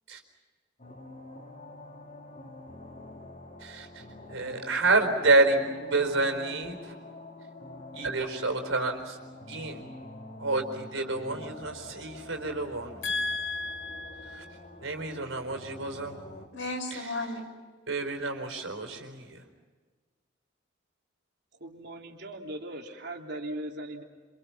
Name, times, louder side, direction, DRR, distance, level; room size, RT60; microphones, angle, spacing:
sound 1, 0.8-16.5, left 2 dB, 40° left, 3.2 m, -46 dB
voice 1, 4.3-5.6 5.8-6.9 7.9-9.2 9.5-9.8 10.4-13.1 14.8-16.2 16.9-17.2 17.9-19.4, right 3 dB, 85° right, 6 dB, 4.3 m, -28 dB
voice 2, 13.0-14.5 16.5-17.5, left 3 dB, 80° left, 2 dB, 5.9 m, -33 dB
voice 3, 21.6-24.0, right 1 dB, 60° right, 1 dB, 3.4 m, -39 dB
28.0 x 27.0 x 5.9 m, 1.4 s
head